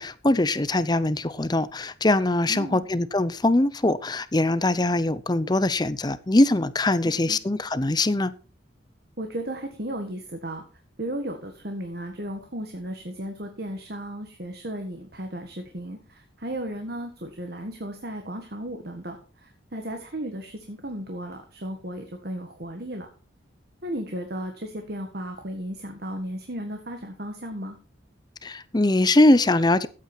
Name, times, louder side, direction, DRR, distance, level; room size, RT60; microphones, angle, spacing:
voice 1, 0.0-8.3 28.4-29.9, left 2 dB, 20° left, 0.6 m, -22 dB
voice 2, 2.5-2.8 7.0-7.4 9.2-10.6 11.0-23.1 23.8-27.8, right 1 dB, 50° right, 1.8 m, -35 dB
15.0 x 8.5 x 4.5 m
head